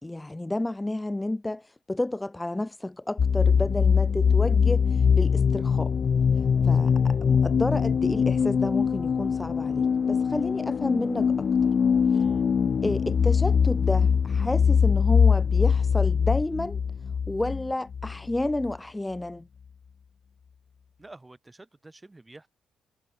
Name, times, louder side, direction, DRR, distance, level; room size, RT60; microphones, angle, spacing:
voice 1, 0.0-5.9 6.6-11.7 12.8-16.8 17.3-19.5, left 2 dB, 10° left, 3.0 m, -31 dB
sound 1, 3.2-18.7, left 6 dB, 45° left, 0.3 m, -22 dB
voice 2, 12.1-12.5 21.0-22.5, right 2 dB, 15° right, 6.7 m, -50 dB
cardioid pair, 90°, 0 cm